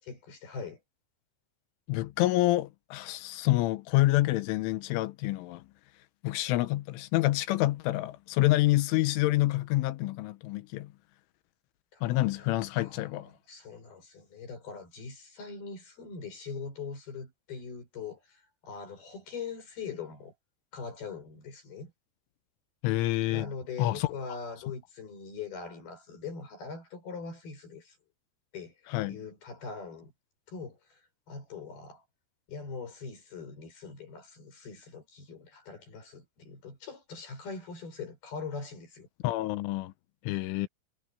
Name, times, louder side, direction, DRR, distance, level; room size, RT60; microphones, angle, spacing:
voice 1, 0.0-0.8 11.9-20.3 20.7-21.9 23.3-28.0 28.5-30.1 30.5-31.0 31.3-32.0 32.5-39.1, left 5 dB, 50° left, 8.6 m, -42 dB
voice 2, 1.9-5.6 6.2-10.9 12.0-13.3 22.8-23.5 23.8-24.1 28.9-29.2 39.2-39.9 40.2-40.7, left 17 dB, 90° left, 3.4 m, -27 dB
omnidirectional pair, 5.6 m